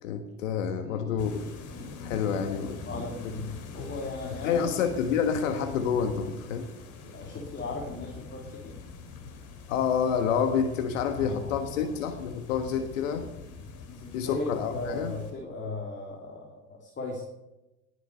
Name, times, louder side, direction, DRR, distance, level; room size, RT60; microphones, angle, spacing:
voice 1, 0.0-1.4 2.0-2.8 4.4-6.6 9.7-13.2 14.1-15.2, left 7 dB, 65° left, 7 dB, 1.6 m, -28 dB
voice 2, 0.8-1.1 1.9-2.0 2.8-4.8 7.0-8.7 11.1-12.0 12.7-12.8 13.9-17.2, left 3 dB, 25° left, 1 dB, 2.9 m, -37 dB
sound 1, 1.2-15.3, left 4 dB, 45° left, 3.2 m, -43 dB
19.0 x 7.9 x 6.7 m, 1.0 s
figure-of-eight pair, 80°, 41 cm